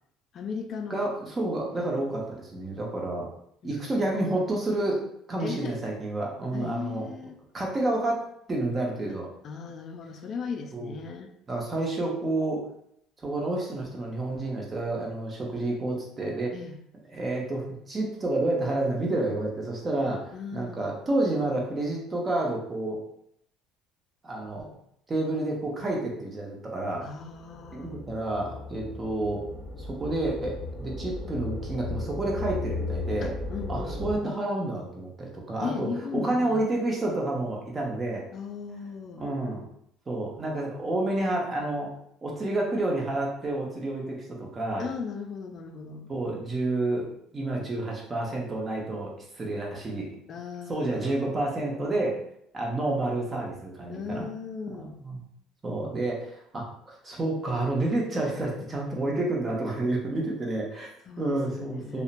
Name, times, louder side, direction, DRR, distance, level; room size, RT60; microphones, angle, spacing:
voice 1, 0.3-1.1 3.6-4.3 5.4-5.8 6.5-7.3 9.1-9.2 9.4-11.3 16.5-16.8 20.3-20.8 27.0-28.0 33.2-34.4 35.6-36.7 38.3-39.3 44.8-46.1 50.3-51.3 53.9-55.0 61.1-62.0, left 5 dB, 50° left, 5 dB, 0.3 m, -37 dB
voice 2, 0.9-3.3 3.6-5.0 5.3-7.1 7.5-8.2 8.5-9.3 10.7-10.9 11.5-12.6 13.2-16.5 17.1-23.0 24.2-24.7 25.1-27.0 27.7-29.4 29.8-33.3 33.7-38.2 39.2-39.6 40.1-41.9 42.2-44.9 46.1-47.1 47.3-50.1 50.7-52.2 52.5-54.3 54.8-55.2 55.6-60.9 61.2-62.0, right 2 dB, 30° right, -1 dB, 0.8 m, -29 dB
sound 1, 27.1-34.1, left 3 dB, 15° left, 0.9 m, -36 dB
2.7 x 2.1 x 2.5 m, 0.72 s
supercardioid pair, 90°, 0 cm